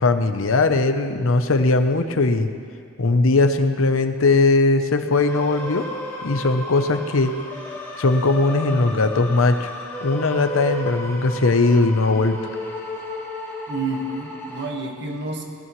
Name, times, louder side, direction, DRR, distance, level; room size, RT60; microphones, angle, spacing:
voice 1, 0.0-2.5 3.0-5.9 6.2-7.3 8.0-9.7 10.0-12.4, left 3 dB, 85° left, 8 dB, 0.8 m, -19 dB
sound 1, 5.1-14.7, left 1 dB, 10° left, 1.6 m, -34 dB
voice 2, 13.7-15.4, right 2 dB, 60° right, 1 dB, 1.6 m, -29 dB
18.5 x 14.5 x 3.2 m, 2.2 s
head